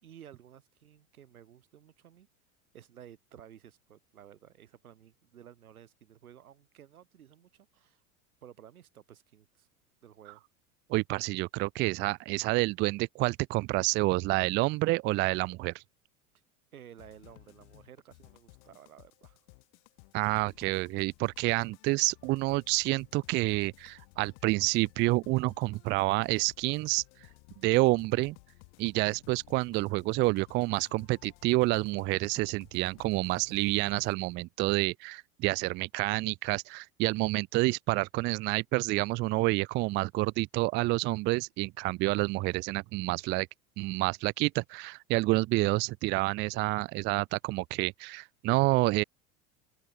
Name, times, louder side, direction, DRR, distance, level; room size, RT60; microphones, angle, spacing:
voice 1, 0.0-2.3 2.7-8.0 8.4-9.7 10.0-10.4 16.7-19.4, right 10 dB, 75° right, 2.7 m, -54 dB
voice 2, 10.9-15.8 20.1-27.0 27.6-28.4 28.8-43.5 43.8-49.0, right 22 dB, 25° right, 0.4 m, -28 dB
sound 1, 17.0-34.2, left 36 dB, 55° left, 3.2 m, -57 dB
open air
figure-of-eight pair, 85°, 43 cm